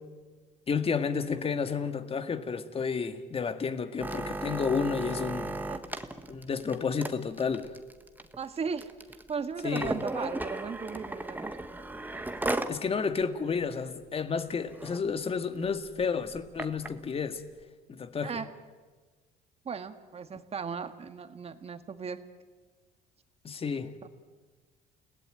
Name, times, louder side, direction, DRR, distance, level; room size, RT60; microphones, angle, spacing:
voice 1, 0.7-5.5 6.3-7.7 9.6-9.9 12.7-17.4 17.9-18.3 23.4-23.9, left 5 dB, 35° left, 1.9 m, -31 dB
sound 1, 4.0-12.8 13.2-13.3 13.6-13.9 14.4-14.5 14.7-15.0 15.7-16.9 17.6-17.7, right 2 dB, 10° right, 1.5 m, -36 dB
voice 2, 8.4-11.5 18.2-18.5 19.6-22.2 24.0-24.1, right 6 dB, 35° right, 1.9 m, -37 dB
29.5 x 18.0 x 9.3 m
cardioid pair, 110°, 17 cm